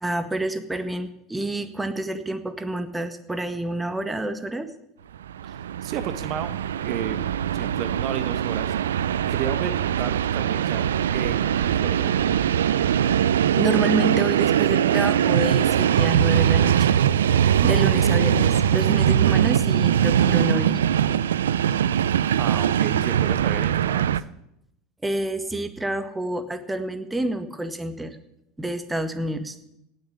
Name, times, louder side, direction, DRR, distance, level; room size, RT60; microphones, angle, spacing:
voice 1, 0.0-4.7 13.6-17.0 17.6-20.8 25.0-28.2 28.6-29.6, right 1 dB, 10° right, 9 dB, 1.7 m, -28 dB
Train, 5.2-24.2, right 9 dB, 80° right, 0.5 m, -21 dB
voice 2, 5.4-7.2 7.5-8.7 9.3-10.8 11.1-12.4 22.4-24.1, right 9 dB, 55° right, 10 dB, 1.4 m, -32 dB
17.5 x 6.7 x 9.8 m, 0.80 s
hypercardioid pair, 80°, 0 cm